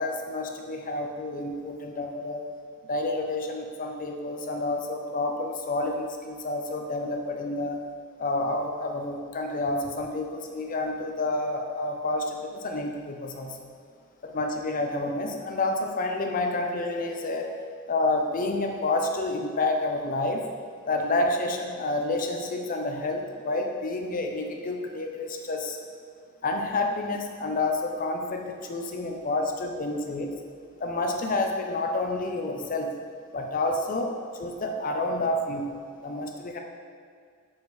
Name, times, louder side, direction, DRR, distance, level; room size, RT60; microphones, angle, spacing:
voice 1, 0.0-2.4 2.9-7.8 8.2-13.7 14.2-17.5 17.9-20.5 20.9-25.8 26.4-30.3 30.8-32.9 33.3-34.1 34.4-35.7 36.0-36.6, left 2 dB, 40° left, 3 dB, 0.6 m, -29 dB
7.2 x 4.7 x 3.2 m, 2.2 s
head